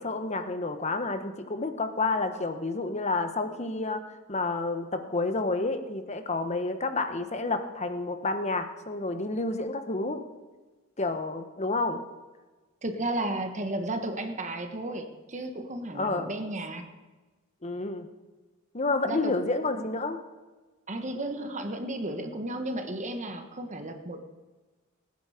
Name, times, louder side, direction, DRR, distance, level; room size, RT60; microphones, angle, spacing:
voice 1, 0.0-4.0 4.3-10.2 11.0-12.0 15.9-16.3 17.6-18.1 18.7-20.2, left 3 dB, 35° left, 8 dB, 1.1 m, -29 dB
voice 2, 12.8-16.9 19.0-19.3 20.9-24.2, right 1 dB, 35° right, 6 dB, 1.3 m, -33 dB
19.5 x 9.6 x 5.0 m, 1.3 s
head